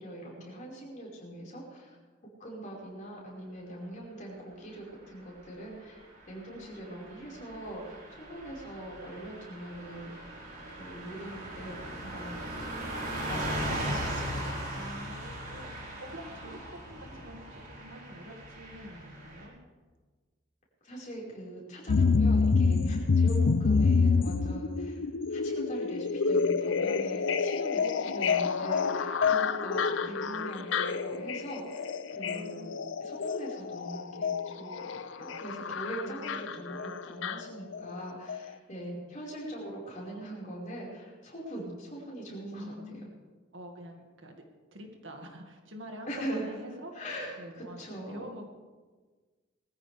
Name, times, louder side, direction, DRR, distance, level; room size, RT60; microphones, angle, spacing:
voice 1, 0.0-2.0 2.4-6.0 6.3-10.3 10.8-12.8 13.3-14.8 20.8-25.0 25.3-27.9 28.1-32.7 33.0-42.7 46.1-46.5 46.9-48.3, right 1 dB, 40° left, -4 dB, 5.0 m, -42 dB
Car passing by / Truck, 6.5-19.4, right 1 dB, 50° right, 4.6 m, -38 dB
voice 2, 6.5-7.1 14.7-19.6 27.8-28.7 30.1-30.4 32.2-32.8 35.9-36.7 38.8-39.1 42.5-43.2 43.5-44.4 44.7-46.9 47.4-48.5, equal, 75° right, 3 dB, 2.1 m, -47 dB
sound 1, 21.9-38.0 38.3-38.4, left 4 dB, 70° left, 0.5 m, -28 dB
21.0 x 14.5 x 3.5 m, 1.4 s
head